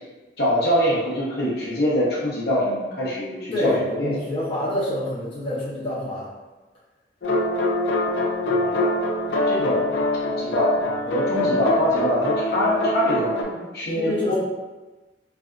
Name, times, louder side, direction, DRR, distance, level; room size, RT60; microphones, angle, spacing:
voice 1, 0.4-4.1 7.9-8.2 8.6-8.9 9.5-9.8 10.2-14.3, equal, 60° left, -7 dB, 0.8 m, -24 dB
voice 2, 3.5-6.3 9.6-9.7 13.8-14.3, left 1 dB, 30° left, -9 dB, 0.8 m, -27 dB
sound 1, 7.2-13.4, left 1 dB, 90° left, 0.4 m, -24 dB
3.3 x 2.5 x 2.4 m, 1.2 s
head